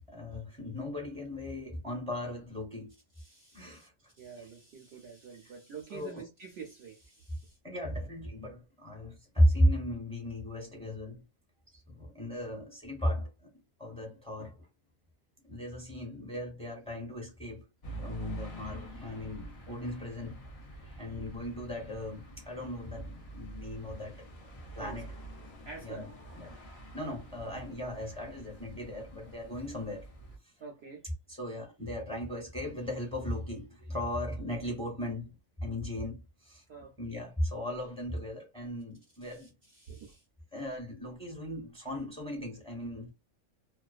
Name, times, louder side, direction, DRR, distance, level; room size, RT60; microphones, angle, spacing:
voice 1, 0.1-2.9 3.5-3.9 4.4-4.5 5.4-5.5 5.9-6.2 7.6-11.2 11.7-13.5 13.8-14.7 15.4-17.6 18.0-20.4 20.7-24.3 24.7-25.1 25.8-26.1 26.4-30.1 30.4-30.6 31.3-36.6 37.0-39.5 40.5-43.1, equal, 5° left, 0.7 m, -35 dB
voice 2, 3.2-3.9 4.2-7.6 21.0-21.3 24.8-25.0 25.6-26.1 30.6-31.1 36.7-36.9 39.3-40.2, right 5 dB, 65° right, 0.7 m, -48 dB
sound 1, 17.8-30.4, right 2 dB, 60° left, 0.3 m, -46 dB
2.4 x 2.2 x 2.4 m
omnidirectional pair, 1.4 m